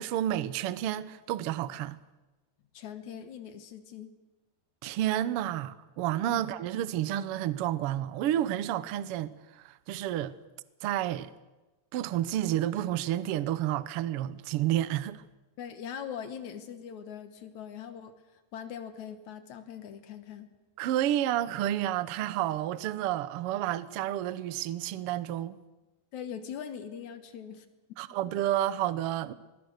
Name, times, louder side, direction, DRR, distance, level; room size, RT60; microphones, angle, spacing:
voice 1, 0.0-2.0 4.8-10.3 10.8-11.3 11.9-15.2 20.8-25.6 28.0-29.3, right 12 dB, 70° right, 1.4 m, -30 dB
voice 2, 2.7-4.1 6.3-6.4 15.6-18.1 18.5-20.5 26.1-27.7, left 8 dB, 70° left, 2.7 m, -41 dB
25.5 x 20.5 x 6.5 m
omnidirectional pair, 3.6 m